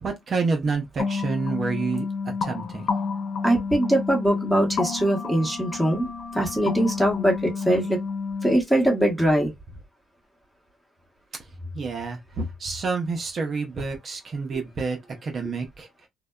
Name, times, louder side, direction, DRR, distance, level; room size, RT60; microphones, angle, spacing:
voice 1, 0.0-2.1 2.4-2.8 11.7-15.0 15.2-15.9, right 4 dB, 50° right, 0.6 m, -28 dB
sound 1, 1.0-8.6, left 5 dB, 60° left, 0.5 m, -30 dB
voice 2, 3.4-6.1 6.3-8.0 8.4-9.5, right 1 dB, ahead, 1.0 m, -22 dB
2.6 x 2.1 x 2.2 m
cardioid pair, 90°, 0 cm